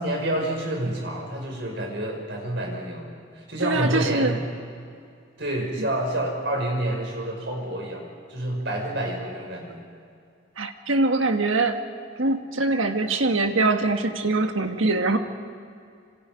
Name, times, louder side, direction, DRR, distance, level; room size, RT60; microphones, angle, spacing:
voice 1, 0.0-4.4 5.4-9.8, right 1 dB, 60° right, 1 dB, 5.8 m, -28 dB
voice 2, 3.6-4.4 5.8-5.9 10.6-11.8 12.2-15.2, right 2 dB, 80° right, 5 dB, 1.7 m, -23 dB
27.5 x 26.5 x 5.2 m, 2.4 s
head